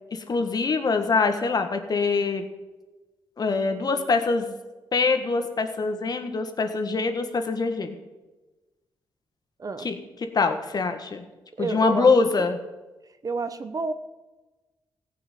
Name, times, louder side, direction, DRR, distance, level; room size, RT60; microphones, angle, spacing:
voice 1, 0.1-2.5 3.4-4.6 4.9-7.9 9.8-10.0 10.3-11.2 11.6-12.6, left 4 dB, 50° left, 7 dB, 1.6 m, -24 dB
voice 2, 11.6-12.5 13.2-13.9, right 4 dB, 45° right, 11 dB, 1.0 m, -30 dB
15.0 x 6.0 x 9.3 m, 1.2 s
cardioid pair, 70°, 9 cm